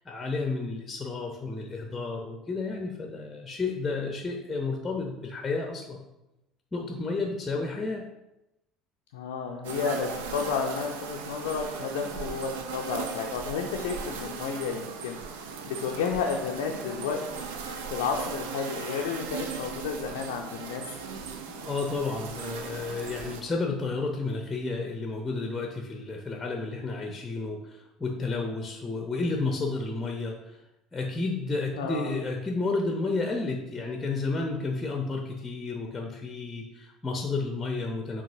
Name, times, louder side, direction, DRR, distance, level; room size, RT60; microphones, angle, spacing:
voice 1, 0.1-6.1 6.7-8.0 21.6-30.6 30.9-38.2, left 3 dB, 20° left, 2 dB, 0.7 m, -31 dB
voice 2, 9.1-15.2 15.7-17.5 17.9-20.8 31.7-32.2, left 6 dB, 70° left, 1 dB, 0.4 m, -31 dB
sound 1, 9.6-23.4, right 5 dB, 70° right, 0.4 m, -38 dB
6.9 x 2.8 x 2.6 m, 0.94 s
figure-of-eight pair, 60°, 0 cm